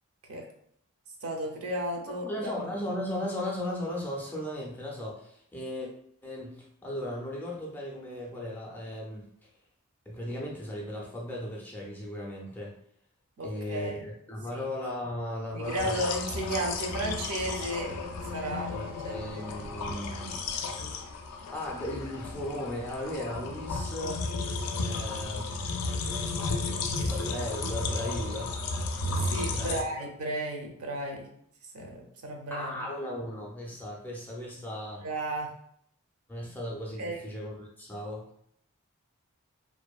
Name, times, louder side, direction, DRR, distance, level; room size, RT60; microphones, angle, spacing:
voice 1, 1.2-2.7 13.4-14.0 14.5-14.6 15.5-17.9 18.3-19.8 25.8-26.3 26.6-27.2 29.2-31.3 31.7-32.9 35.0-35.5 37.0-37.2, right 1 dB, 70° right, 2 dB, 0.5 m, -34 dB
voice 2, 2.2-5.9 6.2-9.3 10.1-12.7 13.4-16.1 18.7-20.7 21.5-24.2 24.7-25.5 26.2-28.6 29.5-29.8 32.5-35.0 36.3-38.3, left 1 dB, 10° left, -3 dB, 0.3 m, -36 dB
sound 1, 15.6-29.8, left 3 dB, 85° left, 0.3 m, -33 dB
2.5 x 2.1 x 2.3 m, 0.69 s
head